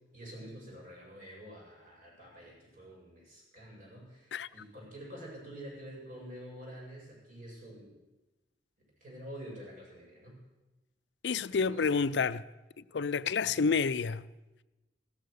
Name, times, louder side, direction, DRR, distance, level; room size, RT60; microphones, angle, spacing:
voice 1, 0.1-7.9 9.0-10.4 11.5-12.1 13.4-13.7, equal, 50° right, 7.9 m, -48 dB
voice 2, 11.2-12.4 12.9-14.2, left 5 dB, 80° left, 0.5 m, -29 dB
16.0 x 13.0 x 6.8 m
head